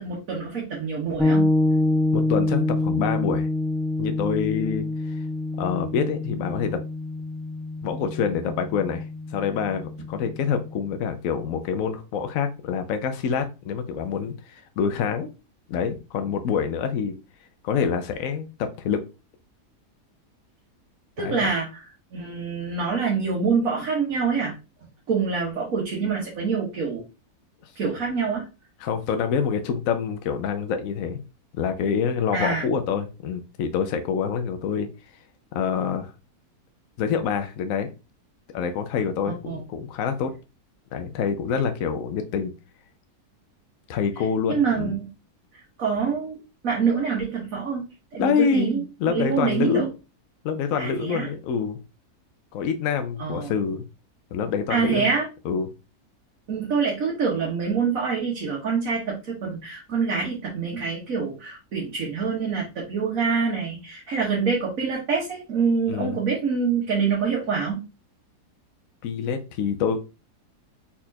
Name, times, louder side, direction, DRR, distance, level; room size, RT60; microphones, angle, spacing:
voice 1, 0.0-1.5 21.2-24.6 25.1-27.0 27.7-28.5 32.3-32.7 39.4-39.6 44.5-45.1 45.8-46.4 46.6-47.9 48.1-48.8 49.1-49.9 50.8-51.3 53.2-53.5 54.7-55.3 56.5-67.8, right 5 dB, 60° right, -3 dB, 1.7 m, -26 dB
sound 1, 1.2-10.9, left 2 dB, ahead, 1.0 m, -26 dB
voice 2, 2.1-3.5 4.0-5.2 5.6-6.8 7.8-9.0 9.3-15.3 15.7-17.1 17.6-19.0 21.2-21.5 27.6-27.7 28.8-31.2 31.5-34.9 35.5-36.1 37.0-37.9 38.5-40.3 40.9-42.5 43.9-44.9 48.2-49.9 50.4-51.8 52.5-53.8 54.3-55.1 55.4-55.7 65.9-66.2 69.0-70.0, left 6 dB, 65° left, 7 dB, 0.9 m, -26 dB
4.3 x 4.2 x 2.8 m, 0.29 s
omnidirectional pair, 1.7 m